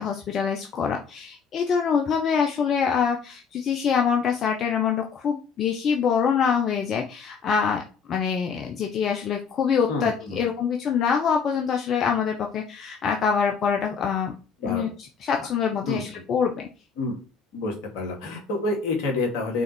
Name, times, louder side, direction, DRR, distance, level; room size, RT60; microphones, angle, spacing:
voice 1, 0.0-7.8 8.1-14.3 14.6-14.9 15.2-16.7, left 6 dB, 45° left, 2 dB, 1.0 m, -25 dB
voice 2, 9.9-10.4 14.6-14.9 15.4-15.5 15.9-16.2 17.0-17.2 17.5-19.6, left 2 dB, 70° left, 1 dB, 2.3 m, -28 dB
6.4 x 4.0 x 4.5 m, 0.35 s
hypercardioid pair, 70°, 0 cm